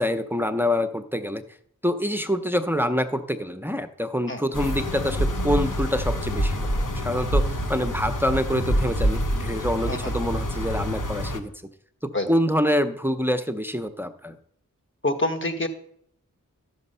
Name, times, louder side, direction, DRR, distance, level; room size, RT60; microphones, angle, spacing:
voice 1, 0.0-1.4 1.8-11.5 12.3-14.4, equal, 5° right, 8 dB, 0.7 m, -26 dB
sound 1, 4.5-11.4, equal, 65° left, 1.1 m, -26 dB
voice 2, 15.0-15.7, left 2 dB, 35° left, 7 dB, 1.3 m, -26 dB
13.0 x 6.1 x 5.5 m, 0.68 s
wide cardioid pair, 50°, 34 cm